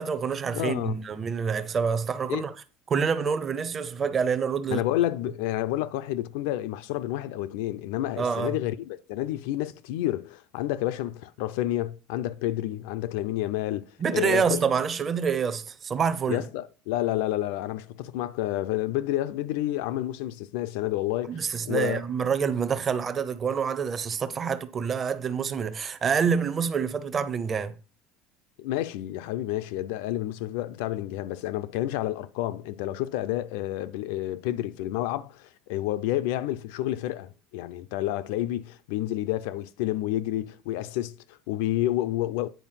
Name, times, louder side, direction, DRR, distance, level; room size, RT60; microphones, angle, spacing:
voice 1, 0.0-2.5 2.9-4.8 8.2-8.5 14.0-16.5 21.3-27.8, right 6 dB, 20° right, 0.6 m, -27 dB
voice 2, 0.5-1.0 2.3-2.4 4.7-14.6 16.3-22.0 28.6-42.5, left 14 dB, 80° left, 0.6 m, -30 dB
9.3 x 4.6 x 5.8 m
cardioid pair, 175°, 0 cm